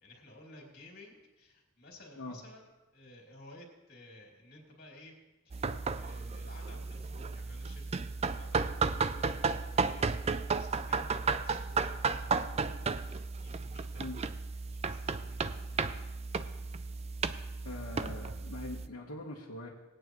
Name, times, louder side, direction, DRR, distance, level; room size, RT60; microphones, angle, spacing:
voice 1, 0.0-5.1 5.4-14.1 14.6-16.0, left 1 dB, 45° left, -1 dB, 2.8 m, -55 dB
sound 1, 5.5-18.9, right 4 dB, 30° right, 0.3 m, -34 dB
voice 2, 17.6-19.7, left 2 dB, 75° left, -4 dB, 1.3 m, -42 dB
20.0 x 8.9 x 3.1 m, 1.1 s
head